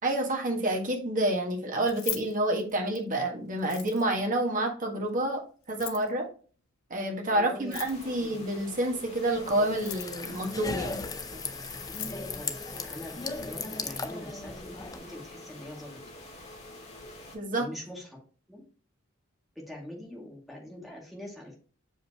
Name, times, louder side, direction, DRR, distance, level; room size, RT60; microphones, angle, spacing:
voice 1, 0.0-5.4 5.7-6.3 6.9-11.0 17.3-17.7, right 1 dB, 40° right, 1 dB, 1.5 m, -28 dB
Keys jangling, 1.8-3.1 3.6-4.3 5.6-6.1 7.6-8.3 9.6-10.3 11.5-11.6 11.8-12.2, left 12 dB, 85° left, 0.7 m, -39 dB
voice 2, 7.3-7.8 8.1-8.4 10.2-10.3 11.3-11.4 11.7-16.0 17.5-18.1 18.5-18.6 19.6-21.6, left 1 dB, ahead, -2 dB, 2.2 m, -44 dB
sound 1, 7.7-17.4, left 1 dB, 35° left, 1.9 m, -47 dB
sound 2, 9.3-15.0, left 3 dB, 20° left, 0.5 m, -37 dB
6.4 x 5.1 x 2.9 m, 0.40 s
head